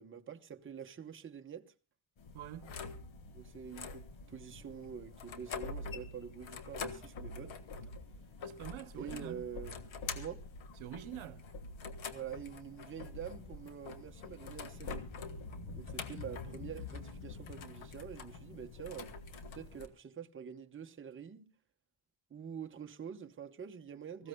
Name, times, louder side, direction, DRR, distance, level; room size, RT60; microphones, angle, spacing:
voice 1, 0.0-1.7 3.3-7.6 9.0-9.8 10.1-10.4 12.1-15.1 15.7-19.1 19.5-21.5 22.3-24.3, right 8 dB, 25° right, 0.8 m, -46 dB
sound 1, 2.2-19.9, left 4 dB, 75° left, 1.6 m, -45 dB
voice 2, 2.3-2.7 8.4-9.5 10.8-11.5 24.2-24.3, right 12 dB, 85° right, 0.8 m, -46 dB
25.0 x 15.5 x 2.2 m
wide cardioid pair, 150°, 47 cm